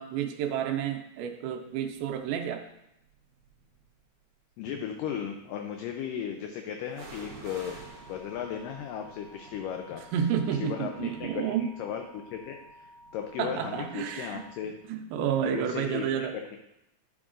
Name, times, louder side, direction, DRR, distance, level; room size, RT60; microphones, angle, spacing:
voice 1, 0.0-2.6 10.1-11.8 13.4-14.5 14.9-16.3, right 9 dB, 85° right, 5 dB, 2.4 m, -30 dB
sound 1, 3.1-4.0 6.9-14.6 14.8-14.9, right 4 dB, 55° right, 2.0 m, -52 dB
voice 2, 4.6-7.8 8.1-10.0 10.5-14.7 15.4-16.4, left 8 dB, 80° left, 4 dB, 2.0 m, -36 dB
sound 2, 7.4-14.6, equal, 45° left, 1.3 m, -53 dB
10.5 x 6.1 x 2.5 m, 0.85 s
omnidirectional pair, 4.3 m